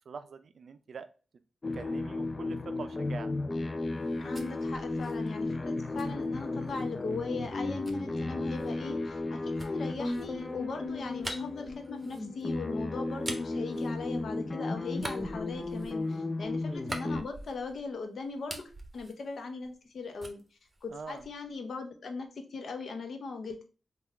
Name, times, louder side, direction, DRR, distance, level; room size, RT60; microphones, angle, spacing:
voice 1, 0.1-1.1 1.7-3.3 16.6-16.9 20.9-21.3, right 5 dB, 70° right, 10 dB, 0.3 m, -44 dB
sound 1, 1.6-17.2, left 2 dB, 40° left, 0.4 m, -34 dB
sound 2, 3.9-7.0 7.8-14.5 14.9-17.9 18.2-19.9 20.2-21.5, right 1 dB, 30° right, 0.8 m, -45 dB
voice 2, 4.2-20.4 20.8-23.6, left 4 dB, 70° left, 5 dB, 0.7 m, -39 dB
3.5 x 2.3 x 3.2 m, 0.35 s
cardioid pair, 50°, 0 cm